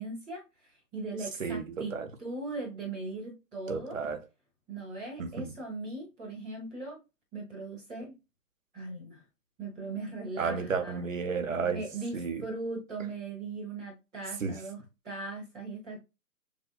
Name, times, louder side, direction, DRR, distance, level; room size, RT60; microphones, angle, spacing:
voice 1, 0.0-4.0 4.7-7.0 7.3-8.2 8.7-9.2 9.6-11.0 11.6-16.0, right 3 dB, ahead, 0.6 m, -39 dB
voice 2, 1.4-2.1 3.7-4.2 5.2-5.5 10.4-11.8 12.1-12.4 14.4-14.6, right 5 dB, 55° right, 0.9 m, -32 dB
6.9 x 2.6 x 2.3 m
figure-of-eight pair, 140°, 48 cm